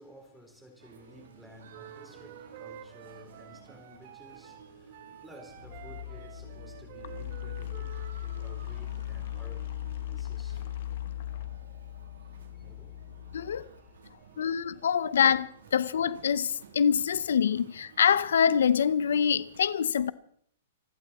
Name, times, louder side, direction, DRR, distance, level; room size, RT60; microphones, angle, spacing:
voice 1, 0.0-10.7 12.3-13.0 13.6-14.5, equal, ahead, 3.9 m, -54 dB
sound 1, 0.8-19.6, right 6 dB, 80° right, 3.1 m, -54 dB
Wind instrument woodwind instrument, 1.7-8.1, right 10 dB, 50° right, 2.2 m, -49 dB
sound 2, 5.5-14.1, left 13 dB, 60° left, 1.7 m, -38 dB
voice 2, 13.3-13.7 14.4-20.1, left 7 dB, 80° left, 0.7 m, -25 dB
27.0 x 12.0 x 4.2 m
hypercardioid pair, 150°, 0 cm